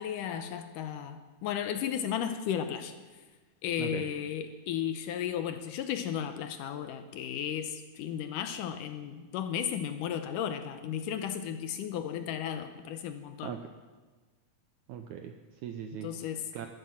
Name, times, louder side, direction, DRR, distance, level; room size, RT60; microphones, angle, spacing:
voice 1, 0.0-2.9 3.6-13.5 16.0-16.7, left 9 dB, 80° left, 9 dB, 2.1 m, -34 dB
voice 2, 14.9-16.1 16.5-16.7, right 9 dB, 80° right, 6 dB, 1.7 m, -39 dB
12.0 x 11.5 x 7.3 m, 1.3 s
omnidirectional pair, 4.1 m